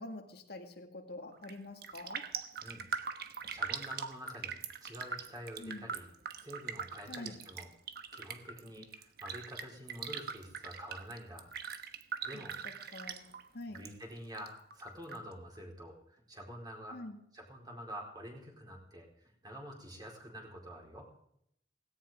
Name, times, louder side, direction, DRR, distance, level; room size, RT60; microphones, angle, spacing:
voice 1, 0.0-2.3 5.6-5.9 7.1-7.4 12.3-13.9 16.9-17.2, left 2 dB, 60° left, 3 dB, 2.0 m, -46 dB
Raindrop, 1.3-1.6 1.8-13.9 14.2-15.2 15.6-15.7, right 6 dB, 60° right, 1.2 m, -42 dB
voice 2, 2.6-6.1 6.3-7.7 8.1-11.5 12.2-12.5 13.7-17.0 17.3-21.1, equal, 25° right, 0 dB, 4.5 m, -48 dB
17.5 x 17.0 x 3.8 m, 0.72 s
head